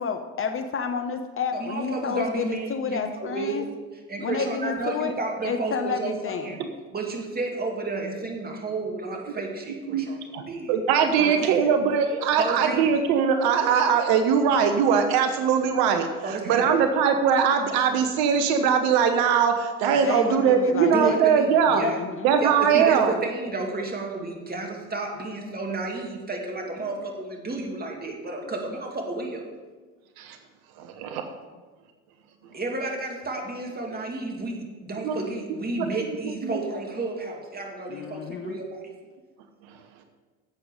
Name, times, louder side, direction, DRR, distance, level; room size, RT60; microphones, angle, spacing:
voice 1, 0.0-3.6 4.2-5.1 5.4-6.5 20.0-21.2 21.7-22.3 26.7-27.1 28.4-28.5 37.9-38.6, left 6 dB, 30° left, 8 dB, 0.7 m, -30 dB
voice 2, 1.5-3.7 4.1-6.6 6.9-10.8 11.2-11.7 12.4-13.0 16.2-16.8 20.9-22.0 22.4-29.4 32.5-38.8, right 3 dB, 20° right, 1 dB, 2.4 m, -31 dB
voice 3, 10.7-21.8 22.2-23.1 30.2-30.4 30.8-31.2 35.0-35.2 36.4-36.6, right 7 dB, 55° right, 7 dB, 1.0 m, -21 dB
11.0 x 7.8 x 4.9 m, 1.3 s
hypercardioid pair, 70°, 43 cm